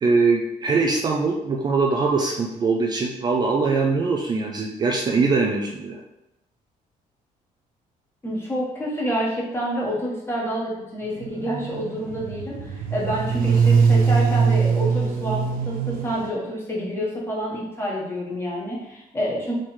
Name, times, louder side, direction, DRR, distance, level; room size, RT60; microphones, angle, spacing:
voice 1, 0.0-6.0, right 4 dB, 30° right, 0 dB, 0.4 m, -22 dB
voice 2, 8.2-19.5, equal, 15° left, -4 dB, 1.2 m, -28 dB
Scooter drive-by, 11.2-16.3, right 5 dB, 75° right, 0.6 m, -22 dB
3.7 x 3.1 x 4.2 m, 0.90 s
cardioid pair, 165°, 15 cm